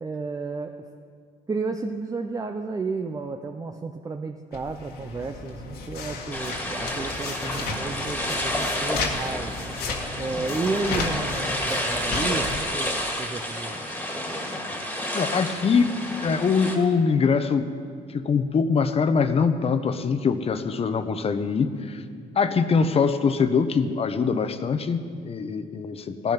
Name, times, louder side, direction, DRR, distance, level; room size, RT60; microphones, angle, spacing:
voice 1, 0.0-0.7 1.5-9.8 10.2-13.8 22.1-22.4, right 3 dB, 20° right, 4 dB, 0.6 m, -32 dB
sound 1, 4.5-12.6, left 4 dB, 70° left, 1.8 m, -34 dB
sound 2, 6.3-16.8, left 1 dB, 10° left, 2.1 m, -30 dB
voice 2, 15.1-15.9 16.2-17.8 18.1-22.0 22.4-26.3, left 5 dB, 35° left, 10 dB, 0.9 m, -23 dB
16.0 x 11.0 x 5.8 m, 2.1 s
cardioid pair, 110°, 17 cm